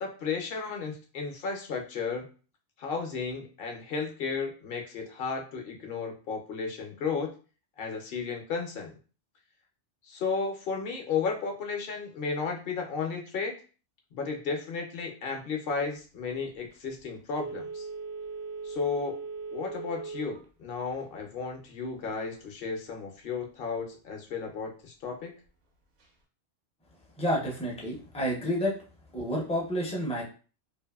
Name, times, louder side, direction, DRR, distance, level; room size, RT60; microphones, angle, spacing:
voice 1, 0.0-2.3 2.8-7.3 7.8-8.9 10.1-13.6 14.1-17.9 18.6-19.1 19.5-25.3, left 5 dB, 60° left, 2 dB, 0.7 m, -33 dB
Telephone, 17.3-20.5 20.9-21.0, right 4 dB, 70° right, 0.9 m, -38 dB
voice 2, 27.2-28.8 29.1-30.2, equal, 10° left, -2 dB, 0.3 m, -29 dB
2.6 x 2.5 x 2.2 m, 0.37 s
omnidirectional pair, 1.2 m